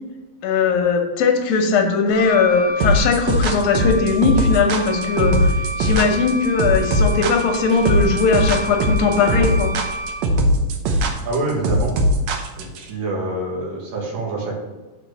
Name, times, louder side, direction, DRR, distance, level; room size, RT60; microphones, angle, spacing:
voice 1, 0.4-9.7, left 5 dB, 75° left, 3 dB, 2.6 m, -19 dB
Wind instrument woodwind instrument, 2.1-10.4, right 1 dB, 35° right, 2.6 m, -30 dB
sound 1, 2.8-12.8, right 1 dB, 80° right, 1.5 m, -19 dB
voice 2, 11.2-12.0 12.6-14.6, right 2 dB, 65° right, -2 dB, 3.3 m, -26 dB
7.7 x 4.5 x 6.5 m, 1.1 s
omnidirectional pair, 4.4 m